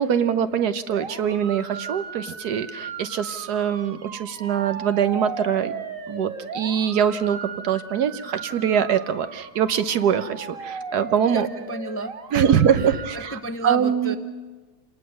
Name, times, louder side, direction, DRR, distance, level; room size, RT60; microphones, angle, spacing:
voice 1, 0.0-5.7 6.1-11.5 12.3-14.2, right 8 dB, 80° right, 11 dB, 1.5 m, -23 dB
sound 1, 0.9-13.4, right 5 dB, 55° right, 1.6 m, -37 dB
voice 2, 11.3-14.2, right 2 dB, 15° left, 8 dB, 0.5 m, -33 dB
27.5 x 19.0 x 6.5 m, 1.3 s
omnidirectional pair, 1.7 m